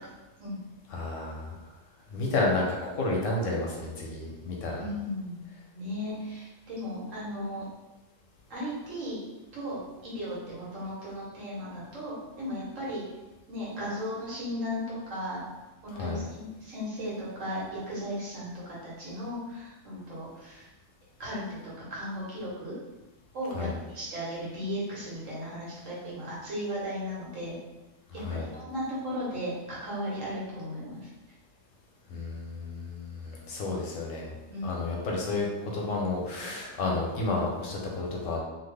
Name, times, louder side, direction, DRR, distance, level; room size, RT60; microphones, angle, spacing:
voice 1, 0.9-1.6 2.1-4.8 15.9-16.2 23.5-23.8 28.2-28.5 32.1-34.3 34.6-38.4, left 2 dB, 85° left, -2 dB, 1.1 m, -31 dB
voice 2, 4.8-5.4 5.7-7.6 8.5-9.2 9.5-13.0 13.5-15.4 15.8-20.7 21.2-22.8 23.3-27.6 28.1-31.1 34.5-34.8, equal, 90° right, -6 dB, 1.5 m, -36 dB
2.9 x 2.4 x 3.3 m, 1.1 s
omnidirectional pair, 1.3 m